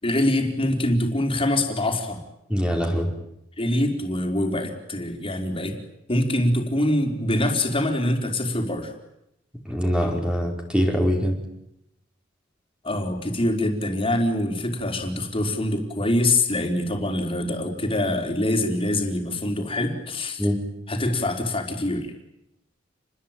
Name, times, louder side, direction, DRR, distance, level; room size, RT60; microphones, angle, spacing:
voice 1, 0.0-2.2 3.6-5.8 6.1-8.9 12.8-20.5 20.9-22.1, left 1 dB, 30° left, 3 dB, 4.7 m, -24 dB
voice 2, 2.5-3.1 9.7-11.4 20.4-20.6, equal, 5° right, 1 dB, 4.9 m, -23 dB
29.5 x 21.5 x 9.2 m, 0.83 s
head